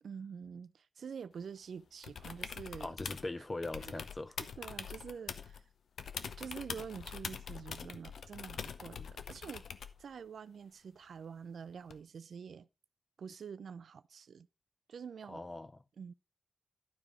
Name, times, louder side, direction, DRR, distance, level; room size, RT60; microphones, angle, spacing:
voice 1, 0.0-3.0 3.8-4.0 4.6-5.6 6.4-9.7 10.0-12.7 13.2-14.5 14.9-15.4 16.0-16.1, right 6 dB, 65° right, 0.4 m, -47 dB
sound 1, 2.0-3.3 3.6-5.6 6.0-10.0 11.9-12.0, left 6 dB, 70° left, 0.8 m, -44 dB
voice 2, 2.8-4.4 8.9-9.1 15.3-15.8, left 2 dB, 15° left, 0.4 m, -41 dB
12.0 x 4.9 x 5.1 m
wide cardioid pair, 175°, 0 cm